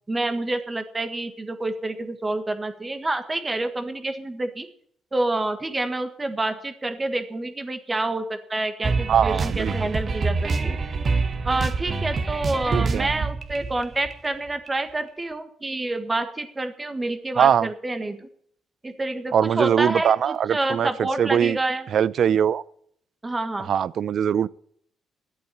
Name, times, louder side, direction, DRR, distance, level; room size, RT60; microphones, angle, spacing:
voice 1, 0.1-4.7 5.1-10.8 11.4-18.3 18.8-21.8 23.2-23.7, right 2 dB, 20° right, 1.6 m, -28 dB
sound 1, 8.8-14.7, right 4 dB, 45° right, 1.7 m, -26 dB
voice 2, 9.1-9.7 12.7-13.2 17.4-17.7 19.3-21.6 21.9-22.6 23.6-24.5, right 8 dB, 60° right, 0.5 m, -21 dB
11.5 x 8.6 x 9.8 m
cardioid pair, 90°, 0 cm